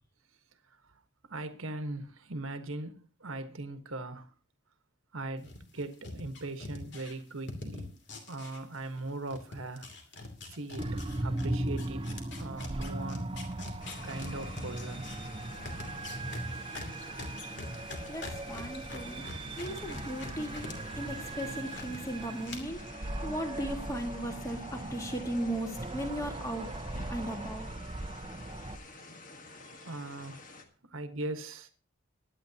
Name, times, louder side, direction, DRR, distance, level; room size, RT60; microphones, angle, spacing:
voice 1, 1.2-4.3 5.1-7.9 8.3-9.9 10.4-13.3 14.0-15.1 23.0-23.1 28.7-29.0 29.6-30.5 30.8-31.7, right 2 dB, 75° right, 1.3 m, -40 dB
sound 1, 5.4-9.0 9.3-20.8 21.1-22.0 22.4-22.6, left 2 dB, 55° left, 2.6 m, -44 dB
sound 2, 10.8-28.8, right 2 dB, 25° right, 0.8 m, -39 dB
sound 3, 13.8-30.6, left 3 dB, 40° left, 1.5 m, -49 dB
voice 2, 18.1-19.3 19.6-26.7 27.1-27.7, right 1 dB, 15° left, 1.6 m, -37 dB
21.5 x 9.7 x 2.8 m
head